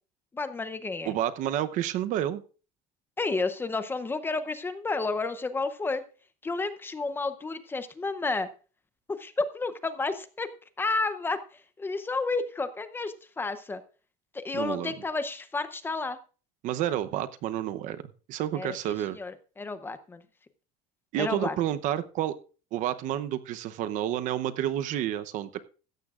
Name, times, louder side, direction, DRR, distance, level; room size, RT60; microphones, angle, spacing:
voice 1, 0.3-1.1 3.2-6.0 6.4-8.5 9.2-10.5 10.8-13.8 14.3-16.2 18.5-20.2 21.2-21.6, left 3 dB, 15° left, 11 dB, 0.7 m, -31 dB
voice 2, 1.1-2.4 14.5-14.9 16.6-18.0 18.3-19.2 21.1-22.4 22.7-25.6, right 12 dB, 50° right, 12 dB, 0.8 m, -30 dB
16.0 x 13.5 x 2.4 m, 0.37 s
cardioid pair, 160°, 17 cm